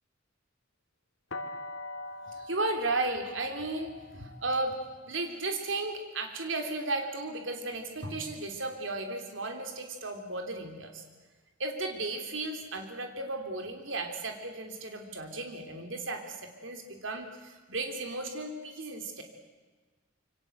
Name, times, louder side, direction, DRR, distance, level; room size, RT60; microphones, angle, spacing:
sound 1, 1.3-7.1, left 2 dB, 70° left, 2.9 m, -44 dB
voice 1, 2.2-4.8 5.0-11.0 11.6-19.2, right 2 dB, 70° right, 4 dB, 3.3 m, -35 dB
27.0 x 25.5 x 8.1 m, 1.3 s
head